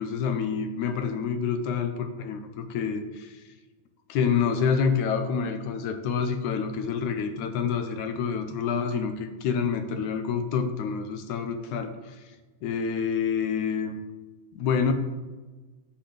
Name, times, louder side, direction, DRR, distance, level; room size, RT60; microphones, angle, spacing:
voice 1, 0.0-3.4 4.1-12.3 12.6-14.0 14.5-14.9, left 6 dB, 75° left, 7 dB, 2.0 m, -27 dB
11.5 x 8.2 x 3.4 m, 1.3 s
omnidirectional pair, 3.7 m